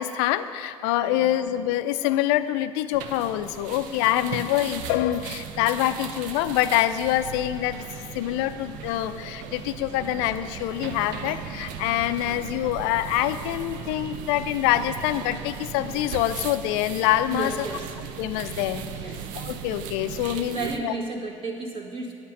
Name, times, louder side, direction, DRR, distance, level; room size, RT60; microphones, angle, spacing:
voice 1, 0.0-7.8 8.1-17.7 18.2-18.8 19.4-20.9, left 13 dB, 55° left, 12 dB, 0.5 m, -25 dB
voice 2, 1.0-1.4 4.2-4.3 17.3-17.9 18.9-19.3 20.3-22.1, right 3 dB, 35° right, -1 dB, 1.9 m, -33 dB
sound 1, 2.9-20.8, right 7 dB, 50° right, 0.7 m, -37 dB
10.5 x 8.7 x 5.3 m, 2.4 s
figure-of-eight pair, 60°, 16 cm